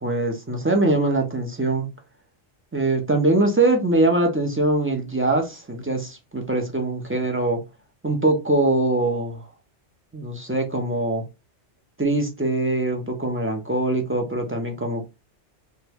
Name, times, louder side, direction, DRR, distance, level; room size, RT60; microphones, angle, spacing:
voice 1, 0.0-1.9 2.7-7.6 8.0-9.4 10.1-11.2 12.0-15.1, right 2 dB, 20° right, 0.3 m, -22 dB
3.0 x 2.2 x 3.3 m
omnidirectional pair, 1.2 m